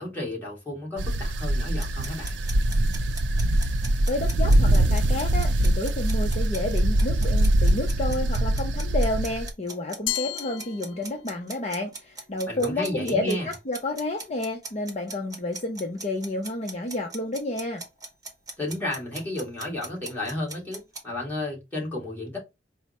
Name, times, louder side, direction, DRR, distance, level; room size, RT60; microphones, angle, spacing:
voice 1, 0.0-2.4 12.5-13.5 18.6-22.4, left 1 dB, 10° left, 2.0 m, -32 dB
sound 1, 1.0-9.5, right 1 dB, 70° right, 0.5 m, -23 dB
sound 2, 1.8-21.0, right 3 dB, 20° right, 1.1 m, -40 dB
voice 2, 4.1-17.8, left 2 dB, 35° left, 0.6 m, -30 dB
Glass, 10.1-11.5, left 15 dB, 80° left, 0.4 m, -33 dB
4.7 x 2.1 x 4.2 m
head